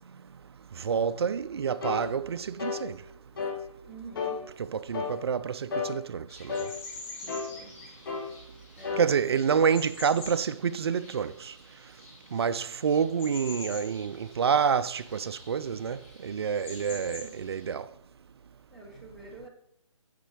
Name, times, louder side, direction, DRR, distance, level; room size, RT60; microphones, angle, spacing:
voice 1, 0.8-3.0 4.6-6.7 9.0-11.5 12.3-17.8, right 6 dB, 50° right, 0.4 m, -28 dB
sound 1, 1.8-2.1 2.6-2.8 3.4-3.6 4.2-4.4 4.9-5.2 5.7-5.9 6.5-6.7 7.3-7.5 8.1-8.3 8.8-9.1 9.6-9.7, left 5 dB, 40° left, 1.5 m, -32 dB
voice 2, 3.9-4.4 7.2-7.7 8.8-9.0 16.9-17.3 18.7-19.5, right 3 dB, ahead, 0.6 m, -47 dB
sound 2, 6.3-17.7, left 3 dB, 25° left, 1.8 m, -47 dB
8.2 x 4.3 x 4.7 m
figure-of-eight pair, 160°, 17 cm